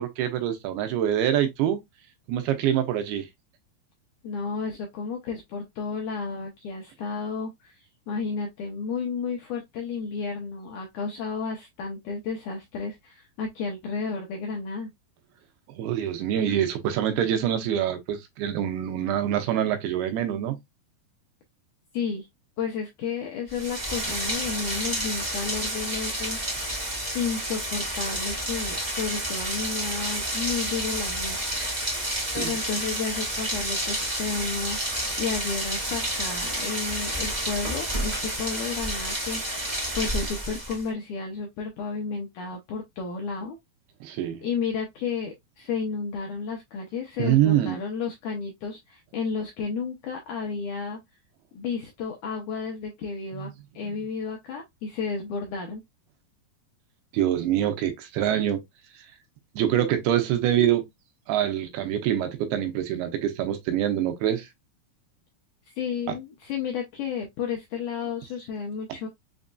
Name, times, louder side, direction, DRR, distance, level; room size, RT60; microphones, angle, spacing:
voice 1, 0.0-1.8 2.3-3.3 15.8-20.6 32.3-32.5 44.0-44.4 47.2-47.8 53.4-53.5 57.1-58.6 59.6-60.9 61.3-64.5, right 11 dB, 85° right, 2.8 m, -25 dB
voice 2, 4.2-7.8 8.1-14.9 21.9-22.3 22.6-26.7 27.1-32.0 32.3-34.8 35.2-39.7 39.9-43.6 44.4-51.0 51.5-55.8 65.8-69.1, left 5 dB, 80° left, 1.8 m, -32 dB
Rain, 23.5-40.9, right 1 dB, 45° right, 0.5 m, -30 dB
6.2 x 2.6 x 2.2 m
omnidirectional pair, 4.4 m